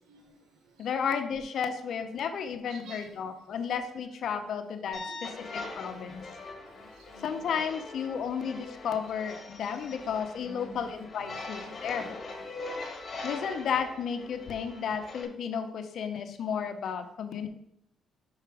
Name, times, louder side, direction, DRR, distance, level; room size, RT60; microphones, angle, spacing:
voice 1, 0.0-0.9 2.6-3.2 5.0-7.6 9.9-10.0 10.4-10.9 11.2-12.0 12.3-12.9, right 3 dB, 85° right, 6 dB, 1.3 m, -52 dB
voice 2, 0.8-6.2 7.2-12.2 13.2-17.5, left 7 dB, 65° left, 8 dB, 0.9 m, -33 dB
sound 1, 4.9-15.2, left 3 dB, 40° left, 1.7 m, -42 dB
5.8 x 5.6 x 5.0 m, 0.72 s
cardioid pair, 90°, 0 cm